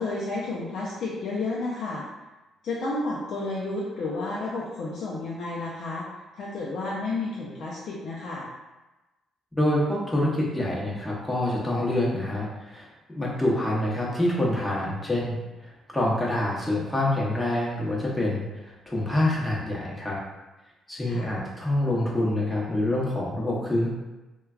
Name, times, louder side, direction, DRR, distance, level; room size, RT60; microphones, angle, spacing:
voice 1, 0.0-2.0 2.6-6.1 6.3-8.5 21.1-21.3, left 2 dB, 70° left, -6 dB, 0.5 m, -31 dB
voice 2, 9.6-20.2 20.9-23.9, left 1 dB, 15° left, -4 dB, 0.8 m, -26 dB
3.1 x 2.2 x 2.3 m, 1.1 s
cardioid pair, 90°, 0 cm